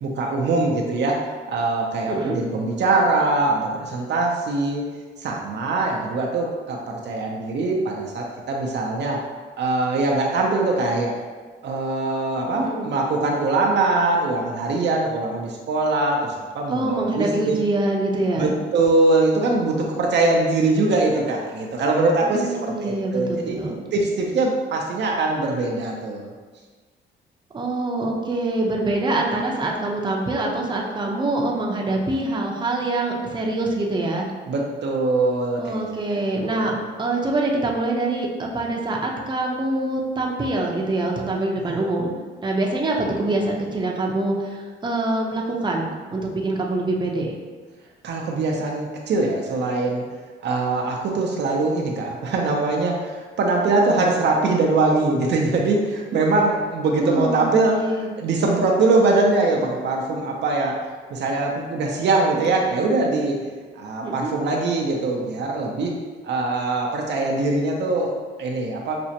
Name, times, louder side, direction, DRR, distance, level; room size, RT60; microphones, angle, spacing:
voice 1, 0.0-4.8 5.2-9.2 9.6-11.2 11.6-17.5 18.4-23.6 23.9-26.3 34.5-35.8 36.3-36.7 41.7-41.8 48.0-50.0 50.4-57.8 58.2-60.8 61.1-63.4 63.8-66.0 66.2-69.0, right 3 dB, 60° right, 0 dB, 0.6 m, -22 dB
voice 2, 12.5-12.9 16.7-18.5 22.2-23.8 27.5-34.3 35.6-36.7 37.0-42.1 42.4-47.3 56.9-58.1 64.0-64.3, right 2 dB, 25° right, -1 dB, 0.6 m, -25 dB
5.9 x 2.1 x 2.8 m, 1.4 s
cardioid pair, 90°, 20 cm